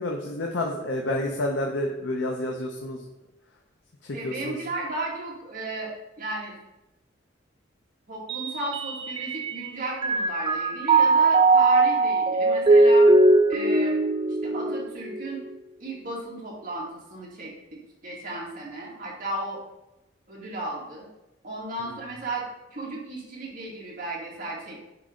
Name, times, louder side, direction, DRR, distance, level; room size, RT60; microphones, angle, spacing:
voice 1, 0.0-3.0 4.0-4.6, left 1 dB, 70° left, 1 dB, 0.7 m, -29 dB
voice 2, 4.1-6.6 8.1-13.1 13.5-13.9 14.4-15.4 15.8-17.5 18.0-19.6 20.3-21.1 21.4-22.5 22.7-24.8, right 2 dB, 45° right, -5 dB, 2.0 m, -34 dB
Mallet percussion, 8.3-9.7 10.0-15.4, right 3 dB, 25° right, 0.3 m, -20 dB
8.8 x 3.1 x 3.8 m, 0.93 s
head